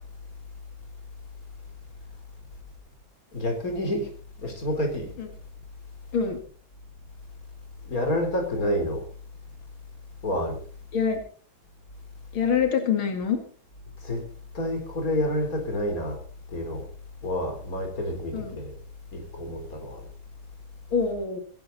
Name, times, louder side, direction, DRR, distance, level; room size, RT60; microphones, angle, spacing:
voice 1, 3.3-4.1 4.4-5.1 7.8-9.0 10.2-10.6 14.0-14.2 14.5-16.2 16.5-16.9 17.2-18.7 19.1-20.0, left 1 dB, 45° left, 3 dB, 4.3 m, -28 dB
voice 2, 12.3-13.4 18.3-18.6 20.9-21.4, left 6 dB, 90° left, 6 dB, 2.9 m, -25 dB
23.0 x 11.0 x 4.1 m, 0.42 s
omnidirectional pair, 2.2 m